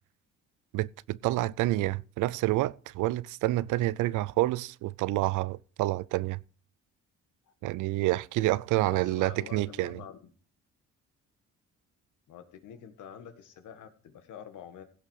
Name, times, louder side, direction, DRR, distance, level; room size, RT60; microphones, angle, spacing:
voice 1, 0.7-6.4 7.6-10.0, right 17 dB, 90° right, 0.5 m, -28 dB
voice 2, 8.8-10.3 12.3-14.8, left 8 dB, 80° left, 1.8 m, -47 dB
16.5 x 6.5 x 4.8 m
cardioid pair, 90°, 30 cm